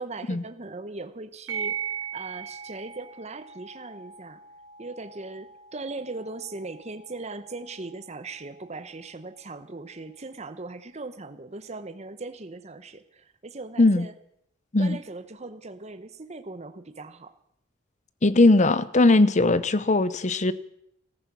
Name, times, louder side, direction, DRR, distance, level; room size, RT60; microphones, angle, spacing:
voice 1, 0.0-4.4 4.8-14.1 14.8-17.3, right 3 dB, 30° right, 10 dB, 0.9 m, -39 dB
sound 1, 1.5-10.5, right 7 dB, 65° right, 4.6 m, -40 dB
voice 2, 18.2-20.5, left 2 dB, 35° left, 15 dB, 0.7 m, -19 dB
15.0 x 14.0 x 6.1 m, 0.76 s
head